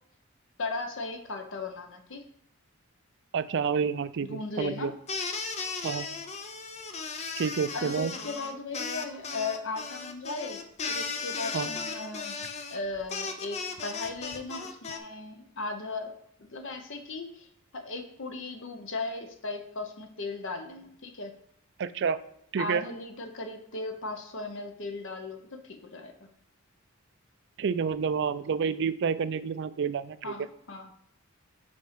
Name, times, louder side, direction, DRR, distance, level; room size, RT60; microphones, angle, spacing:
voice 1, 0.6-2.3 4.2-4.9 7.7-10.6 10.9-12.4 12.7-17.5 17.7-21.3 22.6-26.3 30.2-30.9, left 3 dB, 60° left, 6 dB, 0.9 m, -37 dB
voice 2, 3.3-4.9 5.8-6.1 7.4-8.1 11.5-11.7 21.8-22.2 22.5-22.8 27.6-30.3, right 6 dB, 55° right, 14 dB, 0.4 m, -29 dB
sound 1, 5.1-15.0, left 4 dB, 30° left, 0.6 m, -36 dB
5.2 x 4.4 x 5.1 m, 0.75 s
head